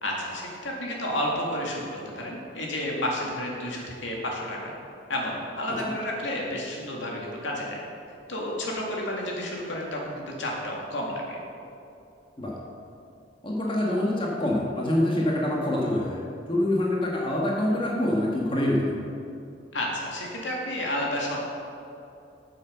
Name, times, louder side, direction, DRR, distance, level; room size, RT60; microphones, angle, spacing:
voice 1, 0.0-4.7 5.1-7.8 8.3-11.4 19.7-21.4, left 1 dB, 75° left, -2 dB, 2.2 m, -31 dB
voice 2, 13.4-16.2 16.5-19.0, left 1 dB, 25° left, -3 dB, 1.5 m, -25 dB
9.5 x 7.0 x 6.6 m, 2.7 s
head